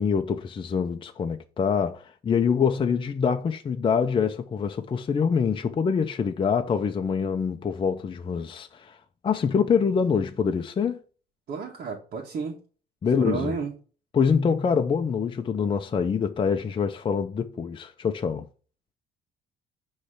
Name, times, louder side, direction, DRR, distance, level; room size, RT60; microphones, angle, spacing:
voice 1, 0.0-9.0 9.2-11.0 13.0-13.5 14.1-18.5, left 6 dB, 30° left, 0.7 m, -25 dB
voice 2, 11.5-12.6 13.2-13.7, right 5 dB, 60° right, 1.7 m, -31 dB
9.8 x 3.3 x 5.7 m
cardioid pair, 110°, 17 cm